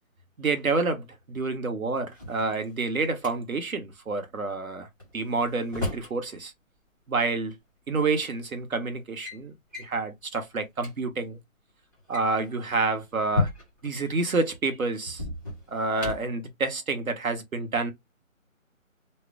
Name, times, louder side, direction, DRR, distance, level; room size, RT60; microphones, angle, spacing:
voice 1, 0.4-4.9 5.1-6.5 7.1-7.5 7.9-9.5 9.8-11.4 12.1-13.5 13.8-15.2 15.7-17.9, right 3 dB, 80° right, 1.0 m, -28 dB
Drawer open or close, 2.0-3.3 5.0-6.2 7.5-7.6 8.4-8.6 8.9-9.4 9.7-10.0 10.5-10.6 10.8-10.9 11.9-13.9 15.1-16.4, left 3 dB, 15° right, 0.9 m, -34 dB
2.2 x 2.1 x 3.6 m
figure-of-eight pair, 170°, 42 cm